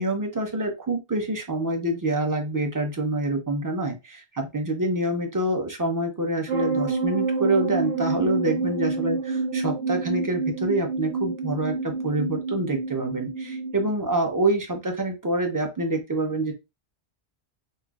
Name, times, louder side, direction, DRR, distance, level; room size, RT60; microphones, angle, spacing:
voice 1, 0.0-16.5, right 2 dB, 20° right, 3 dB, 0.6 m, -26 dB
sound 1, 6.5-13.9, right 3 dB, 80° right, 1.2 m, -28 dB
5.3 x 2.1 x 2.3 m, 0.24 s
omnidirectional pair, 1.1 m